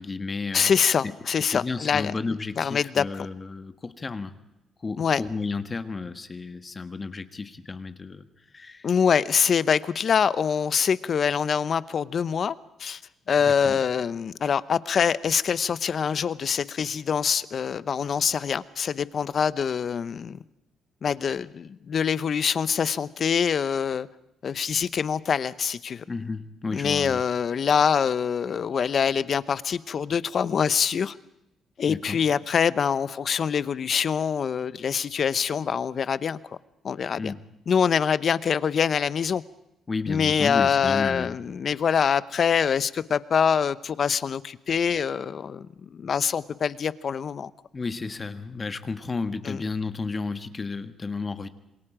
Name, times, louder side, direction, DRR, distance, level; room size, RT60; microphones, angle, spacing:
voice 1, 0.0-0.7 1.0-1.1 1.4-4.4 4.8-8.2 8.5-8.9 13.4-13.8 26.1-27.2 31.9-32.2 37.2-37.4 39.9-41.4 47.7-51.5, left 4 dB, 30° left, 10 dB, 1.4 m, -32 dB
voice 2, 0.5-2.1 2.6-3.3 5.0-5.2 8.8-13.0 13.3-20.4 21.0-24.1 24.4-26.0 26.7-31.1 31.8-36.6 36.8-37.3 37.7-39.4 40.0-47.5 49.5-49.6, left 7 dB, 50° left, 17 dB, 0.8 m, -25 dB
27.0 x 21.5 x 5.0 m, 0.89 s
cardioid pair, 90°, 0 cm